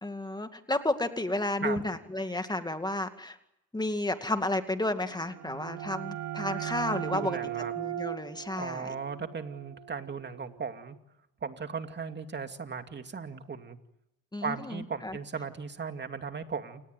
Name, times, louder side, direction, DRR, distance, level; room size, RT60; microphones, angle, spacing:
voice 1, 0.0-3.4 3.7-7.4 7.8-8.9 14.3-15.2, left 1 dB, 15° left, 7 dB, 2.3 m, -32 dB
sound 1, 5.1-10.6, right 12 dB, 80° right, 1.2 m, -38 dB
voice 2, 7.1-7.7 8.6-11.0 11.4-13.8 14.4-16.8, right 5 dB, 35° right, 7 dB, 2.5 m, -37 dB
29.0 x 19.0 x 9.3 m, 0.86 s
cardioid pair, 90°, 30 cm